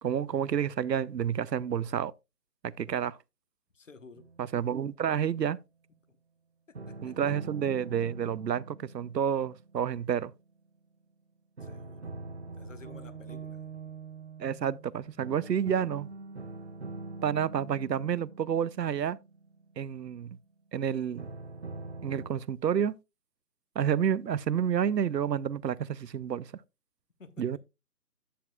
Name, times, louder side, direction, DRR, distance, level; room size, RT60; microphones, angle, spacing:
voice 1, 0.0-2.1 2.6-3.1 4.4-5.6 7.0-10.3 14.4-16.1 17.2-19.2 19.8-20.4 20.7-21.3 22.0-23.0 23.8-26.5 27.4-27.6, right 8 dB, 85° right, 0.6 m, -29 dB
voice 2, 3.7-4.3 6.1-6.2 6.9-7.1 11.6-12.1 12.5-13.8 15.2-15.3 27.2-27.6, left 4 dB, 50° left, 1.0 m, -52 dB
sound 1, 4.2-5.4 6.7-10.8 11.6-20.4 21.2-22.3, right 3 dB, 45° right, 0.9 m, -44 dB
11.0 x 8.6 x 2.2 m
figure-of-eight pair, 165°, 48 cm